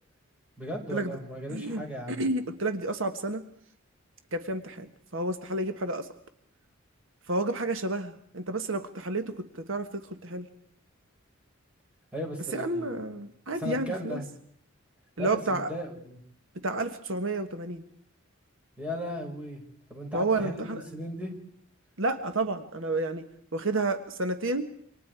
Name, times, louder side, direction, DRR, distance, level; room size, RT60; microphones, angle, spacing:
voice 1, 0.6-2.2 12.1-13.1 13.5-14.3 15.2-16.2 18.8-19.6 19.9-21.3, equal, 5° right, 0 dB, 5.8 m, -36 dB
voice 2, 1.5-3.4 4.3-6.1 7.3-10.5 12.5-14.2 15.2-15.7 16.6-17.8 20.1-20.8 22.0-23.3 23.5-24.7, right 2 dB, 65° right, 8 dB, 1.5 m, -30 dB
28.5 x 25.5 x 4.8 m, 0.63 s
head